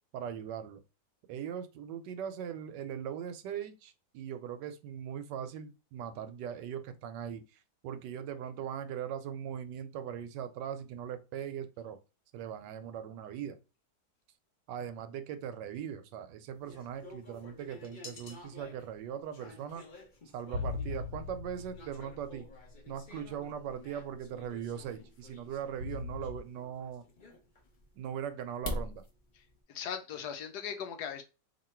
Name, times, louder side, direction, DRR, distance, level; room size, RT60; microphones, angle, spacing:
voice 1, 0.1-0.8 1.3-12.0 12.3-13.6 14.7-19.8 20.3-22.5 22.9-27.1 28.0-29.0, right 8 dB, 80° right, 1.2 m, -40 dB
sound 1, 16.5-29.6, left 1 dB, 40° left, 0.7 m, -47 dB
sound 2, 20.5-23.3 23.7-23.8 25.8-26.4, left 3 dB, 55° right, 1.0 m, -39 dB
voice 2, 29.7-31.2, left 8 dB, 75° left, 1.1 m, -38 dB
3.0 x 2.7 x 4.3 m
omnidirectional pair, 1.9 m